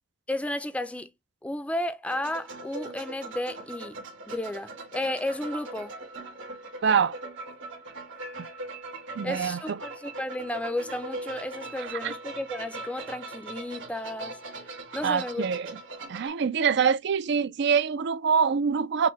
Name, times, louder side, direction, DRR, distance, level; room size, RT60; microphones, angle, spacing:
voice 1, 0.3-1.1 1.4-4.0 4.3-5.9 9.2-14.4 14.9-15.4, left 1 dB, 5° left, 0.5 m, -33 dB
sound 1, 2.1-16.3, right 2 dB, 90° right, 1.7 m, -40 dB
voice 2, 6.8-7.2 8.4-8.5 9.2-9.8 11.8-12.1 15.0-15.7 16.1-19.1, right 6 dB, 65° right, 0.4 m, -25 dB
5.9 x 2.2 x 3.1 m
head